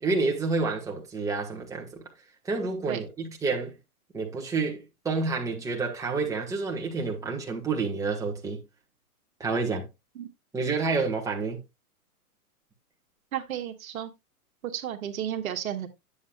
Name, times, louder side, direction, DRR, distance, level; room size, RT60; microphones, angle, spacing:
voice 1, 0.0-2.0 2.4-3.7 4.1-8.6 9.4-9.9 10.5-11.6, right 4 dB, 5° right, 1.4 m, -29 dB
voice 2, 13.3-14.1 14.6-15.9, right 10 dB, 65° right, 1.4 m, -33 dB
9.7 x 7.5 x 2.3 m
hypercardioid pair, 135°, 44 cm